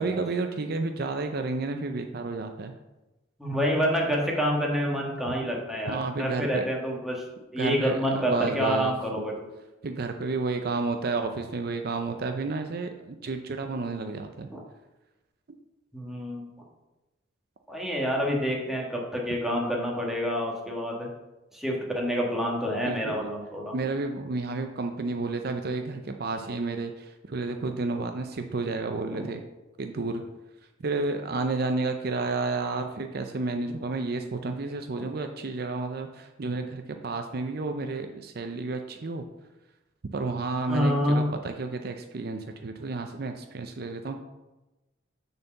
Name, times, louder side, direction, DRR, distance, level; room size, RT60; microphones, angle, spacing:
voice 1, 0.0-2.7 5.9-6.7 7.6-9.2 9.8-14.5 22.9-23.3 23.7-29.4 29.8-30.2 30.8-39.2 40.1-44.2, right 3 dB, 55° right, 6 dB, 0.5 m, -31 dB
voice 2, 3.4-7.2 7.5-9.5 14.5-14.6 15.9-16.4 17.7-21.1 21.5-23.9 29.1-29.2 40.7-41.2, equal, ahead, -2 dB, 1.5 m, -28 dB
6.7 x 4.4 x 6.7 m, 1.0 s
head